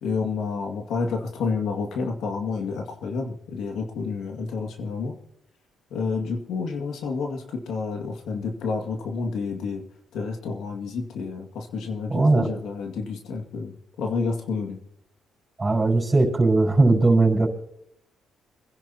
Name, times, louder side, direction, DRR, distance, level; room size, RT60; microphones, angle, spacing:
voice 1, 0.0-5.2 5.9-9.8 10.1-14.8, left 4 dB, 80° left, 2 dB, 2.2 m, -29 dB
voice 2, 12.1-12.5 15.6-17.5, right 2 dB, 25° right, -3 dB, 5.3 m, -19 dB
26.5 x 10.5 x 3.0 m, 0.73 s
cardioid pair, 90°, 0 cm